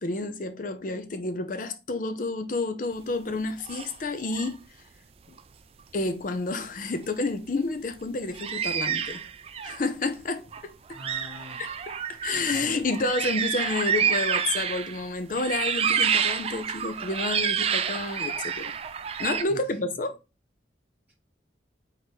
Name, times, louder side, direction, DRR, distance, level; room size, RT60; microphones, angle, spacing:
voice 1, 0.0-4.6 5.9-9.2 9.6-10.5 10.9-11.0 11.6-11.7 12.1-18.7 19.2-20.2, left 3 dB, 45° left, 0.6 m, -30 dB
sound 1, 3.6-3.9 4.3-4.5 5.4-5.5 8.3-9.8 10.5-10.6 10.9-15.0 15.4-19.4, right 7 dB, 30° right, 0.3 m, -28 dB
voice 2, 10.9-11.6 12.3-12.8 19.5-19.7, right 1 dB, 5° right, 3.1 m, -43 dB
4.4 x 3.7 x 3.1 m
head